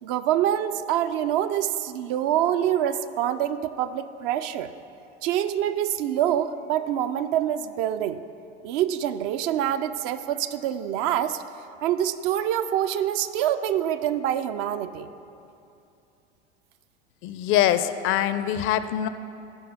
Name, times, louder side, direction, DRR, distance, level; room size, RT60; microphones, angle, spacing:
voice 1, 0.0-4.7 5.2-8.2 8.6-11.4 11.8-15.1, right 11 dB, 50° right, 11 dB, 0.6 m, -25 dB
voice 2, 17.2-19.1, left 11 dB, 40° left, 12 dB, 0.5 m, -23 dB
13.0 x 5.5 x 5.4 m, 2.7 s
hypercardioid pair, 80°, 34 cm